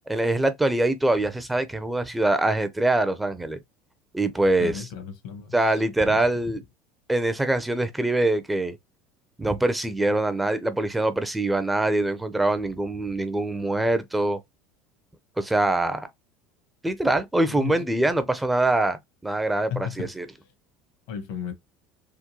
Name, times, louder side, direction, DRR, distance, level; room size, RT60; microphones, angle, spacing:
voice 1, 0.1-3.6 4.1-4.8 5.5-6.6 7.1-8.8 9.4-14.4 15.4-16.1 16.8-20.3, right 2 dB, 10° right, 0.5 m, -24 dB
voice 2, 4.6-6.2 17.5-18.0 19.7-20.1 21.1-21.5, left 8 dB, 75° left, 1.2 m, -35 dB
3.7 x 2.2 x 2.9 m
supercardioid pair, 100°, 0 cm